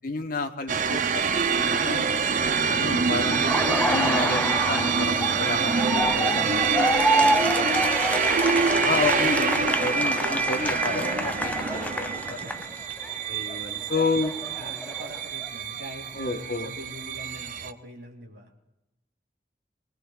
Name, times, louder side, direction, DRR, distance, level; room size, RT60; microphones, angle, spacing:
voice 1, 0.0-2.2 2.7-3.5 3.8-8.1 8.8-12.4 13.3-14.3 16.1-16.7, left 3 dB, 50° left, 4 dB, 1.1 m, -31 dB
sound 1, 0.7-17.7, right 5 dB, 45° right, 0.5 m, -26 dB
Laughter, 3.3-13.1 13.5-15.5, equal, 10° left, 0.4 m, -28 dB
voice 2, 12.2-12.7 14.6-18.5, equal, 65° right, 0 dB, 2.7 m, -44 dB
23.0 x 19.0 x 2.4 m, 0.93 s
head